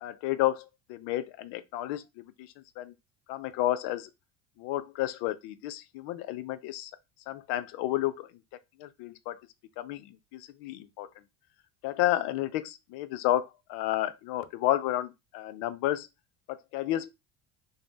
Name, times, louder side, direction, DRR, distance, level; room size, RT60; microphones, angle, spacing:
voice 1, 0.0-2.5 2.8-2.9 3.3-4.1 4.6-6.9 7.3-8.3 8.8-9.4 9.8-11.1 11.8-16.1 16.5-17.1, left 14 dB, 65° left, 0.5 m, -31 dB
2.6 x 2.0 x 3.3 m
supercardioid pair, 90°, 42 cm